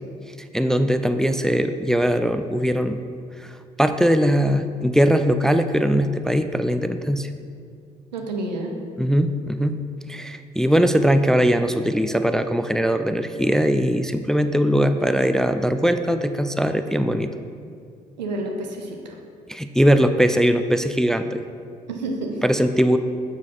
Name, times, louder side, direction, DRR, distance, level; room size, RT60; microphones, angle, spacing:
voice 1, 0.5-3.0 3.4-3.5 3.8-7.3 9.0-9.8 10.1-17.3 19.5-21.4 22.4-23.0, equal, ahead, 9 dB, 0.3 m, -20 dB
voice 2, 8.1-8.8 18.2-19.2 21.9-22.4, right 2 dB, 80° right, 2 dB, 0.8 m, -29 dB
7.1 x 6.3 x 4.2 m, 2.3 s
figure-of-eight pair, 50°, 21 cm